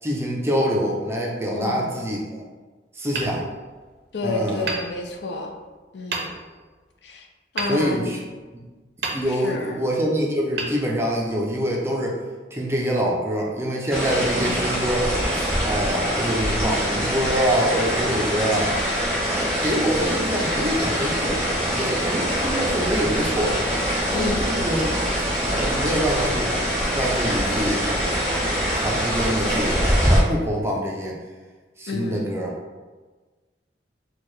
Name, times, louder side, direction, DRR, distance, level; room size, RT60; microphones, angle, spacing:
voice 1, 0.0-2.4 2.9-3.5 4.2-4.7 7.7-8.2 8.5-8.6 9.1-12.2 12.5-18.7 19.4-21.4 21.7-23.6 24.1-25.0 25.5-26.5 26.9-27.9 28.7-31.1 31.8-32.5, equal, 15° right, -2 dB, 0.4 m, -25 dB
voice 2, 1.5-2.0 4.1-5.5 5.9-6.3 7.0-7.3 7.5-8.1 9.2-9.8 24.1-24.5 31.9-32.3, left 2 dB, 75° left, 3 dB, 0.5 m, -30 dB
Hammer, 3.1-4.1 4.6-5.6 6.1-6.7 7.6-8.5 9.0-9.7 10.5-11.5, right 3 dB, 65° right, 0.6 m, -33 dB
sound 1, 13.9-30.2, equal, 5° left, 0.9 m, -24 dB
4.5 x 2.3 x 3.1 m, 1.3 s
head